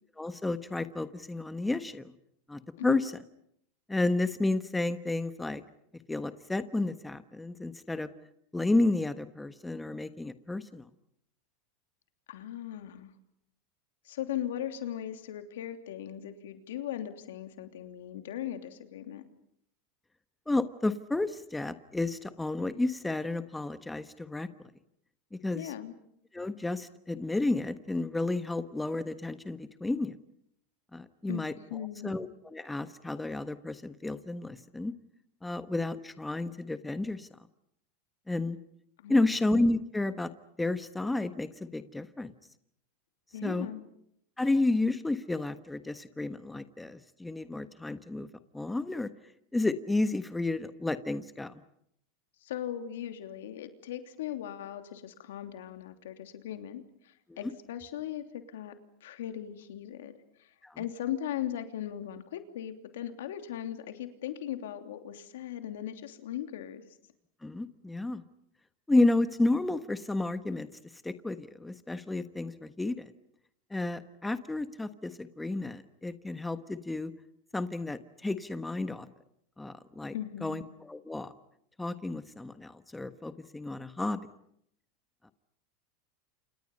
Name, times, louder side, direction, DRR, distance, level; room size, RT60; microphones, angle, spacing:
voice 1, 0.2-2.1 2.5-3.0 3.9-5.6 6.1-8.1 8.5-10.8 20.5-24.5 25.3-25.7 26.3-30.2 30.9-31.5 32.0-34.9 35.4-37.3 38.3-38.6 39.1-40.3 40.6-42.3 43.4-43.7 44.4-48.3 48.5-49.1 49.5-51.5 57.3-57.4 60.6-60.8 67.4-68.2 68.9-70.7 71.0-73.1 73.7-77.1 77.5-79.1 79.6-80.1 80.4-81.3 81.8-84.2, left 2 dB, 10° left, 11 dB, 1.3 m, -31 dB
voice 2, 12.3-13.1 14.0-19.2 25.5-25.9 31.3-31.4 31.7-32.1 39.0-39.3 43.3-43.8 52.4-58.7 59.0-60.1 60.4-66.8 80.1-80.7, left 11 dB, 85° left, 7 dB, 3.0 m, -38 dB
29.5 x 28.0 x 5.4 m, 0.72 s
supercardioid pair, 125°, 0 cm